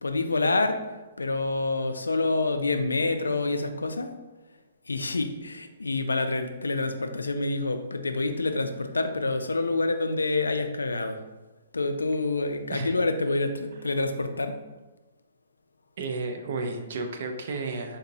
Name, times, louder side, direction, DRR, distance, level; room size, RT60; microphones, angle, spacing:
voice 1, 0.0-4.1 4.9-11.2 11.7-14.6, left 3 dB, 85° left, 7 dB, 0.3 m, -27 dB
voice 2, 16.0-18.0, right 3 dB, 55° right, 5 dB, 0.5 m, -32 dB
3.8 x 2.7 x 2.6 m, 1.1 s
figure-of-eight pair, 125°, 0 cm